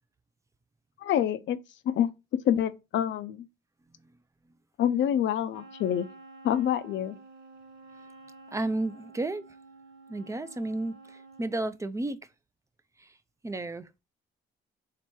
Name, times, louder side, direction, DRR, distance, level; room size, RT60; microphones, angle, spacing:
voice 1, 1.0-1.6 1.8-2.1 2.4-3.5 4.8-6.1 6.4-7.2, left 10 dB, 70° left, 0.5 m, -26 dB
Wind instrument woodwind instrument, 5.5-11.6, right 3 dB, 70° right, 0.7 m, -50 dB
voice 2, 8.5-9.4 10.1-12.3 13.0-13.2 13.4-14.0, right 2 dB, 15° right, 0.4 m, -33 dB
3.3 x 2.9 x 4.6 m
cardioid pair, 90°, 20 cm